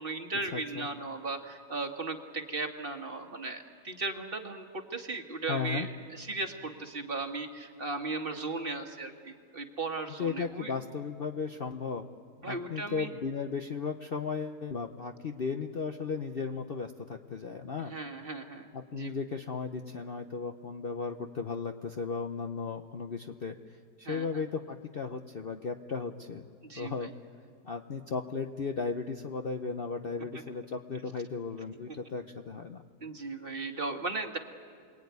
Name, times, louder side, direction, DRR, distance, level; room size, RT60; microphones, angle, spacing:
voice 1, 0.0-10.7 12.4-13.1 17.8-19.2 24.0-24.4 26.6-27.1 31.9-32.0 33.0-34.4, right 3 dB, 35° right, 4 dB, 1.7 m, -37 dB
voice 2, 0.5-0.9 5.5-5.9 10.2-12.1 12.4-17.9 18.7-26.5 26.8-27.1 27.6-32.8, left 5 dB, 45° left, 5 dB, 0.8 m, -35 dB
28.5 x 21.5 x 9.5 m, 2.2 s
omnidirectional pair, 1.7 m